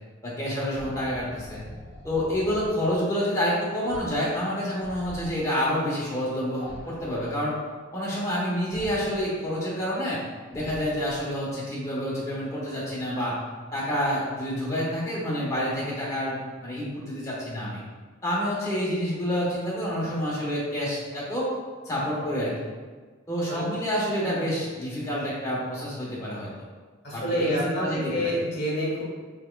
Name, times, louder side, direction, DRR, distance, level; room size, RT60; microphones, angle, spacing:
voice 1, 0.2-1.6 2.0-7.6 7.9-10.2 10.5-13.4 13.7-17.8 18.2-21.5 21.8-22.5 23.3-26.5 27.1-28.3, equal, 15° left, -7 dB, 1.1 m, -28 dB
sound 1, 0.7-2.8 3.8-4.2 4.5-5.4 6.6-7.5 8.7-9.3 10.4-11.4, left 1 dB, 55° right, 1.0 m, -44 dB
voice 2, 27.0-29.0, equal, 55° left, -4 dB, 1.2 m, -28 dB
4.5 x 3.6 x 2.2 m, 1.4 s
head